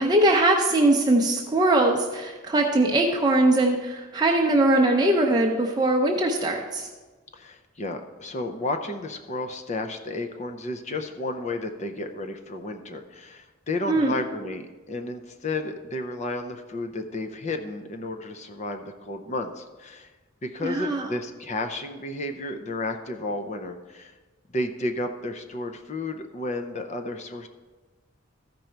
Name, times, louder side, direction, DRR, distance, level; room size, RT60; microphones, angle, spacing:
voice 1, 0.0-6.9 13.9-14.1 20.6-21.1, right 1 dB, 20° right, 0 dB, 0.6 m, -21 dB
voice 2, 7.3-20.1 20.4-24.1 24.5-27.5, left 2 dB, 35° left, 6 dB, 0.6 m, -32 dB
14.0 x 5.3 x 4.5 m, 1.3 s
head